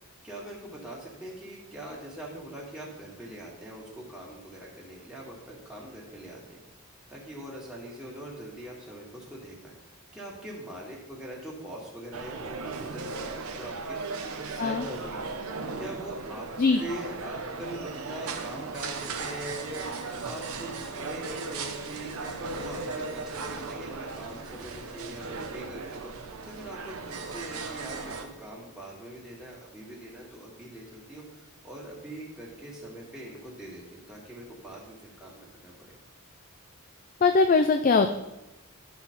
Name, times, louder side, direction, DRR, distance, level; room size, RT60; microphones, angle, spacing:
voice 1, 0.2-6.6 7.1-15.3 15.8-16.5 16.8-19.9 20.2-36.0, right 1 dB, 5° right, -5 dB, 1.8 m, -42 dB
Ambient Cafeteria, 12.1-28.3, right 4 dB, 80° right, 0.9 m, -37 dB
voice 2, 37.2-38.1, left 4 dB, 40° left, 6 dB, 0.4 m, -21 dB
11.5 x 4.1 x 5.8 m, 0.98 s
head